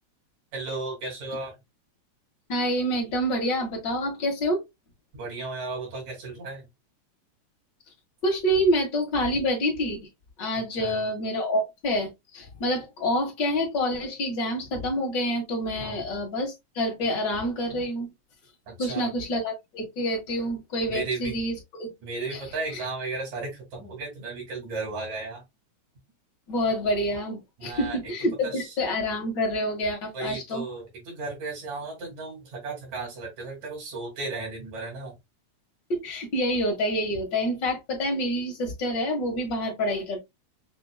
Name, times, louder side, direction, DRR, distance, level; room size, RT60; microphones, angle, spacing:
voice 1, 0.5-1.6 5.1-6.7 10.6-11.0 15.8-16.0 18.7-19.1 20.9-21.4 22.0-25.4 27.6-28.1 28.4-28.7 30.1-35.1, right 3 dB, 70° right, 3.9 m, -35 dB
voice 2, 2.5-4.6 8.2-10.0 10.4-18.1 18.8-21.9 22.3-22.4 22.7-22.8 26.5-30.6 35.9-40.2, equal, 45° left, 1.9 m, -27 dB
6.4 x 2.9 x 2.3 m
omnidirectional pair, 3.3 m